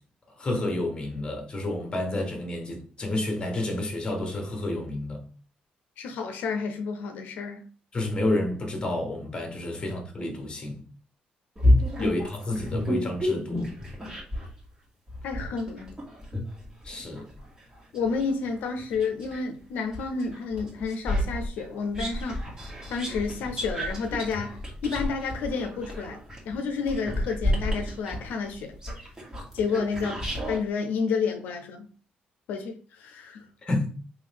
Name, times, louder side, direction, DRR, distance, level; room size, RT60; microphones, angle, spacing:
voice 1, 0.4-5.2 7.9-10.8 12.0-13.7 16.8-17.3 33.6-33.9, left 1 dB, 30° left, 1.3 m, -30 dB
voice 2, 6.0-7.6 12.0-12.2 15.2-15.9 17.9-22.4 22.9-26.2 26.5-28.8 29.5-31.9 32.5-33.4, left 5 dB, 85° left, 0.5 m, -30 dB
sound 1, 11.6-14.5 15.1-19.4 19.9-30.6, left 1 dB, 25° right, 1.9 m, -30 dB
3.7 x 3.0 x 3.5 m
cardioid pair, 90°, 3 cm